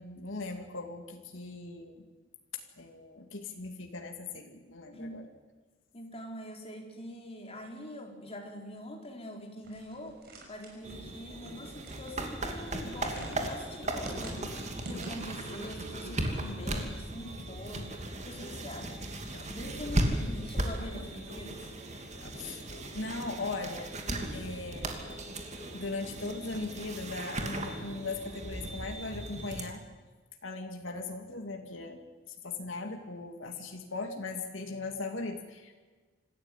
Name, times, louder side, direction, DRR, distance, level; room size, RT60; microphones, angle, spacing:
voice 1, 0.0-2.0 2.8-5.2 20.3-20.5 22.4-22.6 22.9-23.9 24.3-25.2 25.7-29.8 30.4-32.1 32.4-35.8, left 3 dB, 85° left, 3 dB, 2.6 m, -39 dB
voice 2, 5.9-10.2 10.5-14.5 14.8-17.9 18.2-19.0 19.5-21.7, left 1 dB, 30° left, 1 dB, 4.2 m, -44 dB
sound 1, 9.6-15.5, right 1 dB, 55° right, 6.0 m, -46 dB
sound 2, 10.8-29.6, right 1 dB, 35° right, 2.7 m, -37 dB
Singing, 12.9-17.0 17.4-27.8, left 2 dB, 55° left, 2.3 m, -52 dB
26.0 x 14.0 x 9.3 m, 1.3 s
head